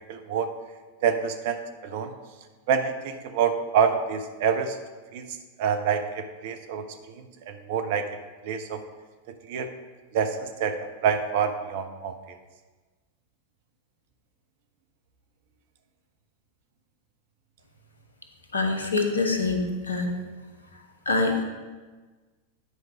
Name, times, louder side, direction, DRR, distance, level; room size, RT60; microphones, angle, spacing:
voice 1, 0.1-0.5 1.0-2.1 2.7-4.8 5.1-8.1 8.4-8.8 9.3-9.7 10.1-12.1, right 7 dB, 50° right, 7 dB, 0.8 m, -27 dB
voice 2, 18.5-20.1 21.1-21.4, left 3 dB, 75° left, 4 dB, 1.0 m, -25 dB
9.7 x 4.6 x 5.0 m, 1.3 s
figure-of-eight pair, 90°, 0 cm